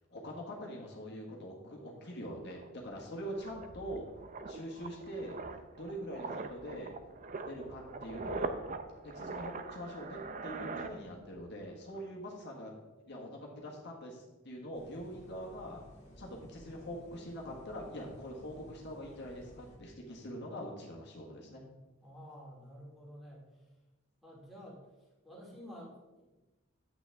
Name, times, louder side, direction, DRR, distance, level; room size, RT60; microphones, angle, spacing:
voice 1, 0.1-4.1 4.5-5.4 5.8-6.9 7.4-8.5 9.0-12.7 13.1-15.8 16.2-21.6, equal, 55° left, -1 dB, 1.5 m, -43 dB
sound 1, 2.1-2.2 2.5-11.6 11.8-12.1, right 3 dB, 40° right, 0.5 m, -43 dB
sound 2, 14.7-19.8, equal, 40° left, 2.2 m, -55 dB
voice 2, 22.0-23.4 24.2-24.8 25.2-26.3, equal, ahead, -5 dB, 2.3 m, -50 dB
9.2 x 7.8 x 3.5 m, 1.1 s
head